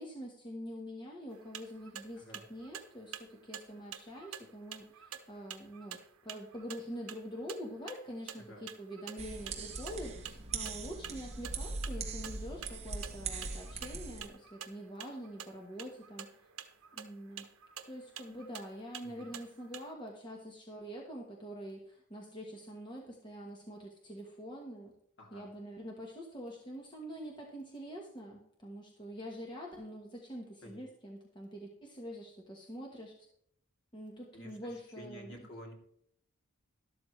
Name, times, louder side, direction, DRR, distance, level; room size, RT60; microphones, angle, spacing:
voice 1, 0.0-16.5 16.9-17.5 17.8-24.9 25.3-33.2 33.9-35.4, equal, 20° left, -1 dB, 1.3 m, -45 dB
sound 1, 1.3-19.9, right 9 dB, 75° right, 1.0 m, -49 dB
voice 2, 2.1-2.5 8.4-8.7 19.0-19.3 25.2-25.5 30.6-30.8 34.3-35.7, equal, 55° left, 0 dB, 3.1 m, -51 dB
sound 2, 9.2-14.3, right 4 dB, 30° right, 1.4 m, -40 dB
12.5 x 12.0 x 3.3 m, 0.68 s
head